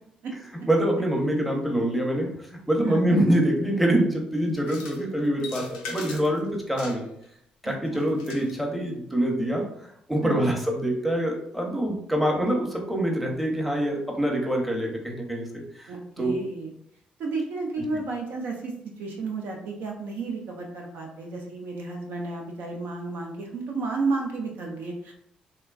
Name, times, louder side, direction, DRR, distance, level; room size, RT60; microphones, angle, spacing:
voice 1, 0.7-2.3 2.7-7.0 7.6-9.7 10.1-15.9 16.2-16.3, right 1 dB, ahead, 0 dB, 0.8 m, -25 dB
voice 2, 2.8-3.2 7.6-8.1 10.2-10.6 15.9-16.7 17.2-25.1, right 3 dB, 60° right, 1 dB, 0.5 m, -32 dB
sound 1, 4.6-5.0 5.4-6.4 6.8-7.3 7.9-8.6, left 4 dB, 80° left, 0.4 m, -40 dB
3.1 x 2.2 x 2.3 m, 0.72 s
figure-of-eight pair, 45°, 4 cm